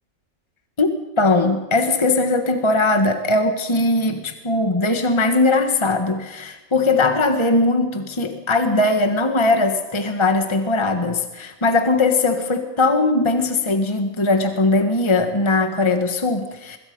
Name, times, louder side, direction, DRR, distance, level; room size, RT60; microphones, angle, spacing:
voice 1, 0.8-16.8, left 2 dB, 20° left, 5 dB, 1.5 m, -20 dB
25.0 x 22.0 x 5.4 m, 1.0 s
omnidirectional pair, 1.5 m